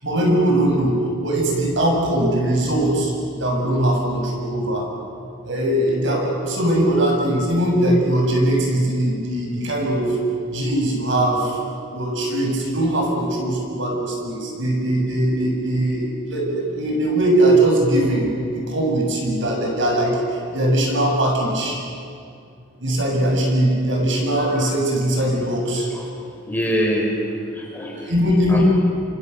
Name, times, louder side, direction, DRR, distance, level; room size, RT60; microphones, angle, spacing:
voice 1, 0.0-4.9 5.4-10.2 10.5-11.6 11.9-21.8 22.8-25.9 28.0-28.7, right 1 dB, 60° right, 0 dB, 7.0 m, -20 dB
voice 2, 26.5-27.2 27.5-28.1 28.5-28.6, equal, 10° left, -1 dB, 4.4 m, -25 dB
28.5 x 27.0 x 6.9 m, 2.4 s
head